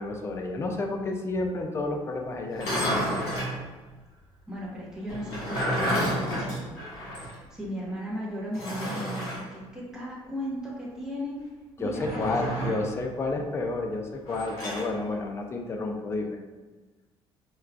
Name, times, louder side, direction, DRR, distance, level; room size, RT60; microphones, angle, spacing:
voice 1, 0.0-3.3 11.8-16.4, left 2 dB, 25° left, 3 dB, 0.3 m, -31 dB
sound 1, 2.5-3.6 5.1-7.4 7.6-7.7 8.5-9.4 11.9-12.9 14.3-14.9, equal, 80° left, 1.5 m, -30 dB
voice 2, 4.5-6.8 7.5-11.4 11.8-12.6, equal, 5° right, -6 dB, 0.8 m, -36 dB
4.5 x 2.2 x 2.4 m, 1.2 s
cardioid pair, 160°, 11 cm